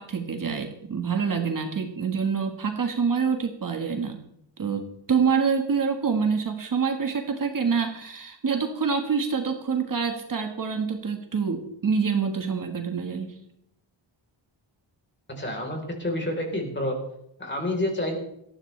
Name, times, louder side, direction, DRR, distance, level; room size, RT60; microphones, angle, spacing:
voice 1, 0.0-4.2 4.6-13.3, right 6 dB, 45° right, 4 dB, 1.6 m, -26 dB
voice 2, 15.3-17.0 17.4-18.2, left 1 dB, 25° left, 2 dB, 4.0 m, -28 dB
18.5 x 14.0 x 3.3 m, 0.76 s
wide cardioid pair, 155°, 47 cm